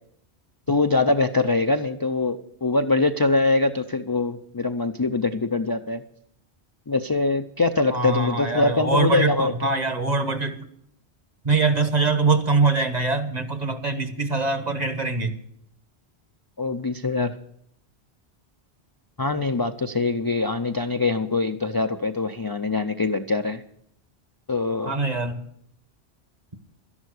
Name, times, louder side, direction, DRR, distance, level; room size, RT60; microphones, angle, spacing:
voice 1, 0.7-6.0 6.9-9.5 16.6-17.4 19.2-23.6 24.5-24.9, left 3 dB, 30° left, 7 dB, 0.4 m, -23 dB
voice 2, 7.9-10.6 11.4-15.3 24.8-25.4, right 3 dB, 40° right, 9 dB, 1.2 m, -23 dB
13.0 x 11.0 x 6.5 m, 0.70 s
omnidirectional pair, 1.1 m